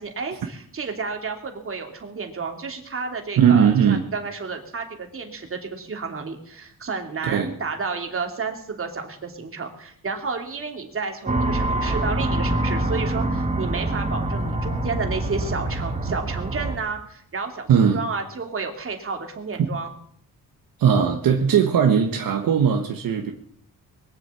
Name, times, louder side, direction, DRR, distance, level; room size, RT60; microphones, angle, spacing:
voice 1, 0.0-19.9, right 4 dB, 35° right, 3 dB, 3.0 m, -31 dB
voice 2, 3.4-4.0 7.2-7.5 17.7-18.0 20.8-23.3, right 7 dB, 70° right, 3 dB, 1.5 m, -18 dB
sound 1, 11.3-16.8, right 1 dB, 20° right, 2.0 m, -25 dB
22.0 x 7.6 x 8.5 m, 0.66 s
cardioid pair, 115°, 36 cm